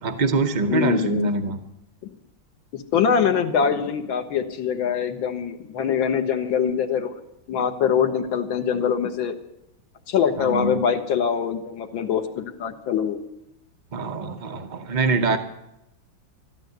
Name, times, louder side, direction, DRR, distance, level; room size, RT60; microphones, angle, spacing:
voice 1, 0.0-1.6 10.4-10.8 13.9-15.4, right 3 dB, 60° right, 7 dB, 0.4 m, -24 dB
voice 2, 0.7-1.3 2.7-7.1 7.5-9.3 10.1-13.2, left 7 dB, 90° left, 5 dB, 1.9 m, -23 dB
13.0 x 12.0 x 8.0 m, 0.85 s
omnidirectional pair, 2.1 m